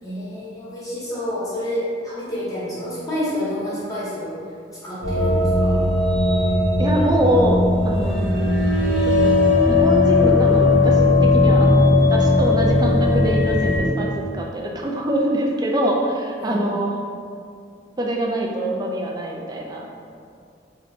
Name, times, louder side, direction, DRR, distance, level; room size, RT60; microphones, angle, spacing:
voice 1, 0.0-4.3 4.8-5.8 16.4-16.6, left 1 dB, 20° left, -10 dB, 0.8 m, -28 dB
sound 1, 5.0-13.8, left 2 dB, 85° right, 1.1 m, -17 dB
voice 2, 6.8-8.2 9.1-9.4 9.7-17.1 18.0-19.9, right 1 dB, 20° right, 0 dB, 0.3 m, -24 dB
2.8 x 2.5 x 3.3 m, 2.3 s
head